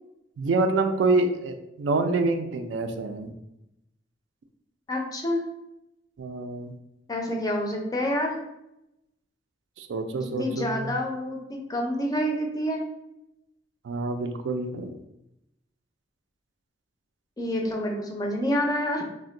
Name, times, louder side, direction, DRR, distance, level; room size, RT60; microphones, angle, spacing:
voice 1, 0.4-3.3 6.2-6.7 9.8-11.0 13.8-14.9, right 3 dB, 75° right, 6 dB, 0.3 m, -26 dB
voice 2, 4.9-5.4 7.1-8.4 10.1-12.9 17.4-19.1, equal, 20° left, 2 dB, 0.4 m, -28 dB
2.5 x 2.1 x 3.7 m, 0.87 s
head